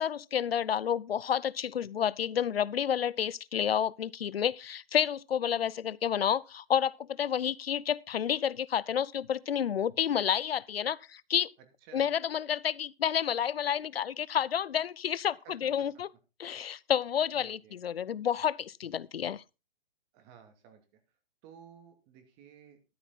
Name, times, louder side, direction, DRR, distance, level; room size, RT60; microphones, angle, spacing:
voice 1, 0.0-11.5 11.9-16.1 16.4-19.4, left 9 dB, 80° left, 0.7 m, -30 dB
voice 2, 17.4-17.9 20.1-21.0 21.4-22.8, right 8 dB, 30° right, 2.6 m, -55 dB
13.0 x 10.0 x 4.1 m
hypercardioid pair, 145°, 29 cm